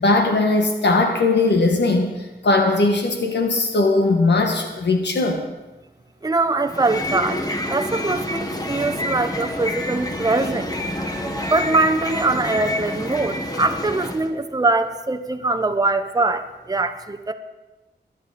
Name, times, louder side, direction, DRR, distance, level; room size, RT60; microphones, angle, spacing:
voice 1, 0.0-5.4 8.8-8.9, left 2 dB, 80° left, 3 dB, 1.4 m, -19 dB
voice 2, 6.2-7.4 7.7-10.7 11.5-17.3, right 3 dB, 20° right, 6 dB, 0.8 m, -22 dB
sound 1, 6.6-14.3, left 1 dB, 20° left, 1.5 m, -28 dB
23.0 x 9.2 x 4.2 m, 1.1 s
wide cardioid pair, 90°, 18 cm